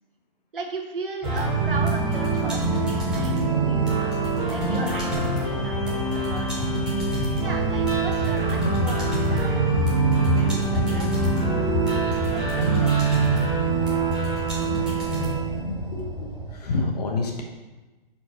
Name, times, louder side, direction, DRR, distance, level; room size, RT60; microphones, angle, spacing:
voice 1, 0.5-4.2 4.5-6.7 7.4-9.6 10.1-11.1 12.1-13.1, right 4 dB, 60° right, 1 dB, 1.2 m, -37 dB
sound 1, 1.2-16.5, right 3 dB, ahead, 1.2 m, -24 dB
voice 2, 15.5-16.1 16.6-17.4, left 3 dB, 40° left, 1 dB, 1.1 m, -27 dB
4.6 x 4.4 x 5.7 m, 1.2 s
figure-of-eight pair, 130°, 30 cm